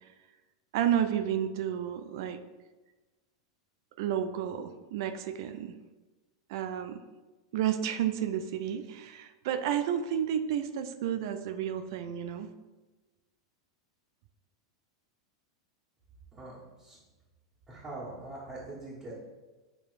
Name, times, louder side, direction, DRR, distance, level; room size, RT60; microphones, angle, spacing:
voice 1, 0.7-2.4 4.0-5.8 6.5-7.0 7.5-12.5, right 9 dB, 65° right, 10 dB, 0.3 m, -31 dB
voice 2, 16.3-17.0 17.7-19.1, right 2 dB, 25° right, -9 dB, 1.5 m, -43 dB
6.7 x 2.8 x 2.5 m, 1.2 s
hypercardioid pair, 95°, 2 cm